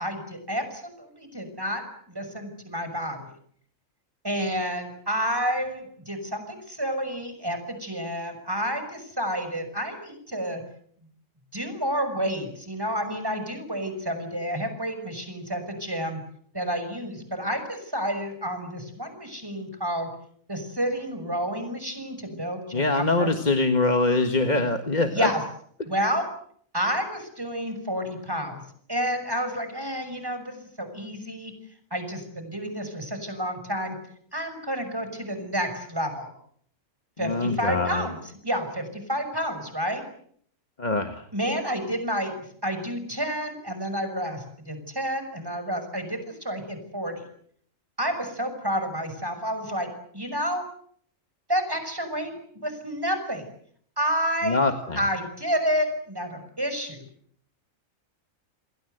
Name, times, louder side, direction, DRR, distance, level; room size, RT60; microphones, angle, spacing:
voice 1, 0.0-1.8 2.1-3.3 4.2-10.6 11.5-16.2 16.5-20.1 20.5-23.3 25.1-25.4 25.8-26.3 26.7-28.6 28.9-31.5 31.9-34.0 34.3-36.3 37.2-40.0 41.3-42.3 42.6-47.2 48.0-49.9 50.1-50.6 51.5-53.4 54.0-54.6 54.9-57.0, equal, 15° right, 8 dB, 6.2 m, -30 dB
voice 2, 22.7-25.3 37.2-38.1 40.8-41.2 54.4-55.0, left 3 dB, 35° left, 6 dB, 1.8 m, -23 dB
29.5 x 22.5 x 8.0 m, 0.64 s
omnidirectional pair, 1.4 m